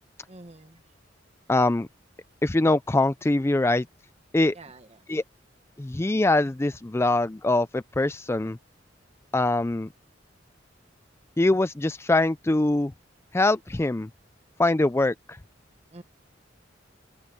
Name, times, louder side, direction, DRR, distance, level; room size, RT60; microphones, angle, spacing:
voice 1, 0.3-0.8 4.5-5.0 15.9-16.0, right 2 dB, 35° right, 1.6 m, -47 dB
voice 2, 1.5-1.9 2.4-3.9 4.3-4.5 5.1-5.2 5.8-8.6 9.3-9.9 11.4-12.9 13.3-14.1 14.6-15.4, left 2 dB, 15° left, 0.4 m, -23 dB
head